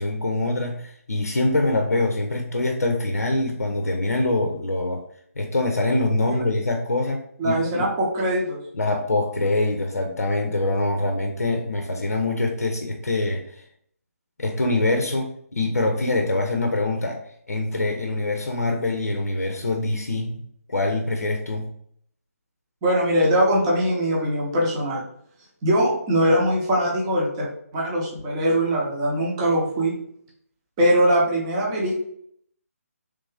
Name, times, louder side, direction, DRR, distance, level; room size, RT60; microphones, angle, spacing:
voice 1, 0.0-5.0 5.4-7.9 8.7-13.6 14.4-17.2 17.5-20.4 20.7-21.7, left 2 dB, 75° left, 4 dB, 0.6 m, -24 dB
voice 2, 7.4-8.6 22.8-25.0 25.6-30.0 30.8-32.0, equal, 20° right, -3 dB, 0.7 m, -22 dB
3.4 x 2.6 x 3.2 m, 0.65 s
figure-of-eight pair, 150°, 8 cm